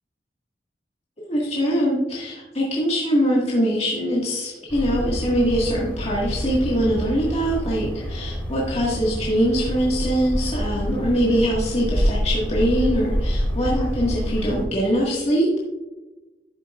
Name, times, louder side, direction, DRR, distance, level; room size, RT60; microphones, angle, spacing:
voice 1, 1.2-15.6, equal, 35° left, -5 dB, 1.6 m, -23 dB
sound 1, 4.7-14.6, equal, 10° left, 2.4 m, -27 dB
11.5 x 7.9 x 2.4 m, 1.1 s
head